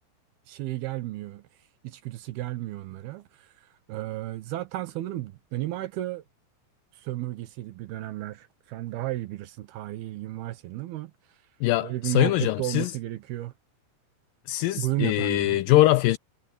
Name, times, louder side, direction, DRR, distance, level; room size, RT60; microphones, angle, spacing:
voice 1, 0.5-1.5 1.8-3.5 3.9-6.2 6.9-11.1 11.8-13.5 14.8-15.6, right 16 dB, 80° right, 3.0 m, -33 dB
voice 2, 11.6-12.9 14.5-16.2, left 16 dB, 80° left, 2.2 m, -22 dB
omnidirectional pair, 4.4 m